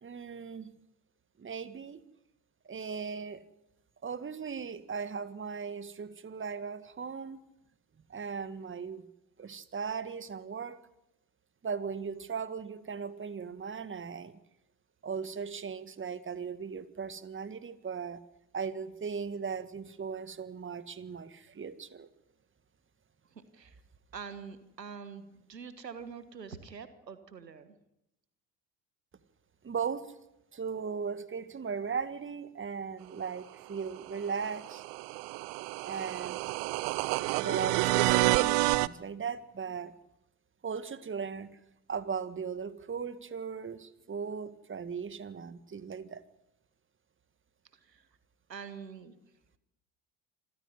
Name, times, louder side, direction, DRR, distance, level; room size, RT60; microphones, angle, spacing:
voice 1, 0.0-0.7 1.4-2.0 2.7-3.4 4.0-7.4 8.1-9.1 9.4-10.8 11.6-14.4 15.0-18.2 18.5-22.1 29.6-30.1 30.5-34.8 35.8-36.5 37.3-39.9 40.6-41.5 41.9-46.2, right 6 dB, 25° right, 14 dB, 1.8 m, -38 dB
voice 2, 23.3-23.8 24.1-27.7 47.8-48.1 48.5-49.1, right 6 dB, 90° right, 12 dB, 1.5 m, -45 dB
sound 1, 34.1-38.9, right 21 dB, 60° right, 0.9 m, -29 dB
26.0 x 15.0 x 9.7 m, 0.86 s
figure-of-eight pair, 60°, 48 cm